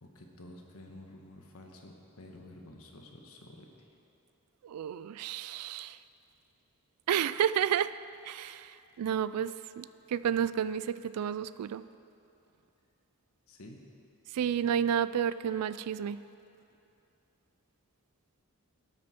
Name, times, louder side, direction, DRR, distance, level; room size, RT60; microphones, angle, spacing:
voice 1, 0.0-3.9 13.5-13.8, left 1 dB, 70° left, 2 dB, 1.3 m, -51 dB
voice 2, 4.6-6.0 7.1-7.9 8.2-11.8 14.3-16.2, right 9 dB, 90° right, 15 dB, 0.3 m, -31 dB
12.5 x 9.5 x 4.4 m, 2.7 s
head